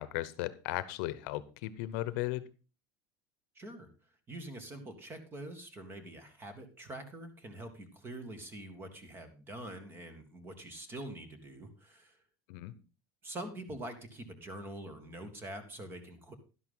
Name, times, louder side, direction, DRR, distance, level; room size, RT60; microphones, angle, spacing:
voice 1, 0.0-2.4 12.5-12.7, left 16 dB, 65° left, 16 dB, 0.9 m, -36 dB
voice 2, 3.6-3.9 4.3-12.2 13.2-16.3, right 1 dB, 20° right, 9 dB, 1.9 m, -45 dB
11.5 x 11.0 x 3.8 m, 0.32 s
supercardioid pair, 145°, 10 cm